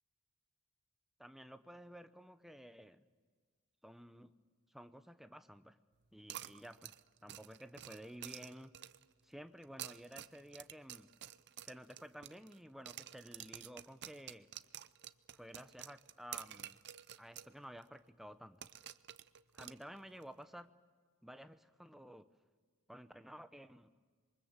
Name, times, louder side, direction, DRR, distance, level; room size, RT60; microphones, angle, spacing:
voice 1, 1.2-3.1 3.8-4.3 4.7-5.8 6.1-6.9 7.2-8.7 9.2-11.1 11.6-14.5 15.3-16.8 17.2-18.7 19.5-20.7 21.2-22.3 22.9-23.9, equal, ahead, 10 dB, 0.9 m, -53 dB
sound 1, 6.3-9.1 9.6-12.6 12.9-17.5 17.8-17.9 18.6-20.2, right 12 dB, 55° right, 0.7 m, -50 dB
26.5 x 23.5 x 7.4 m, 1.5 s
head